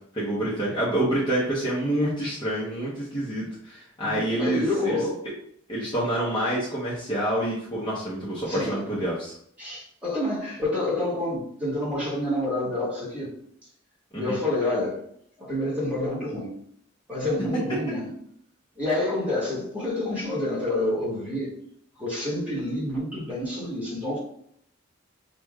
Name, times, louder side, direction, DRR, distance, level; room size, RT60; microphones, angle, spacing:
voice 1, 0.1-5.0 5.7-9.3 14.1-14.4, right 1 dB, 20° left, -8 dB, 0.9 m, -27 dB
voice 2, 4.0-5.2 8.5-8.8 9.6-13.3 14.1-15.0 15.4-16.5 17.1-18.1 18.7-21.5 22.0-24.2, left 1 dB, 5° right, -8 dB, 1.5 m, -28 dB
6.3 x 2.5 x 2.3 m, 0.67 s
head